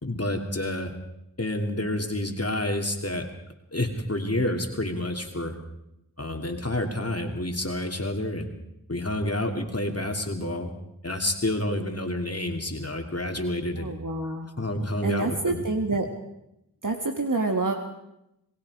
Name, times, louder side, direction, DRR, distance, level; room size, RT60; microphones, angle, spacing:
voice 1, 0.0-0.9 1.4-3.3 3.7-5.6 6.2-8.5 8.9-10.7 11.0-13.9 14.6-15.6, left 1 dB, 40° left, 3 dB, 2.7 m, -29 dB
voice 2, 13.8-14.5 15.0-16.1 16.8-17.7, right 3 dB, 60° right, 3 dB, 1.8 m, -27 dB
27.5 x 19.5 x 4.8 m, 0.83 s
wide cardioid pair, 50°, 37 cm